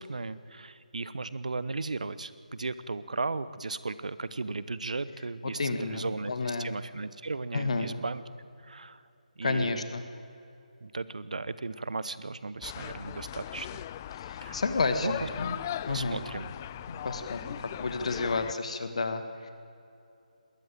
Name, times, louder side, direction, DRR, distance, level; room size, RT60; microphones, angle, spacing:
voice 1, 0.0-8.2 8.6-9.0 9.4-9.8 10.8-13.8 14.4-14.6 15.0-15.3 15.9-16.5, right 3 dB, 60° right, 16 dB, 1.0 m, -36 dB
voice 2, 5.4-6.7 7.5-7.9 9.4-10.0 14.1-15.5 15.9-16.2 16.9-19.5, left 3 dB, 50° left, 9 dB, 1.7 m, -31 dB
sound 1, 12.6-18.5, left 11 dB, 20° left, 0.4 m, -39 dB
20.5 x 17.0 x 9.1 m, 2.7 s
figure-of-eight pair, 150°, 4 cm